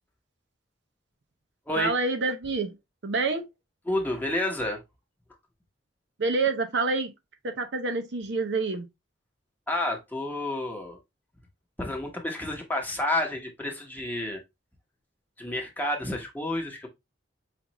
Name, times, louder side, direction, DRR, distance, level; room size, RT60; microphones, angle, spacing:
voice 1, 1.8-2.8 3.0-3.5 6.2-7.1 7.4-8.9, right 3 dB, 65° right, 0.6 m, -27 dB
voice 2, 3.9-4.8 9.7-11.0 11.8-14.4 15.4-16.9, left 1 dB, 10° left, 0.9 m, -30 dB
5.1 x 2.4 x 2.9 m
head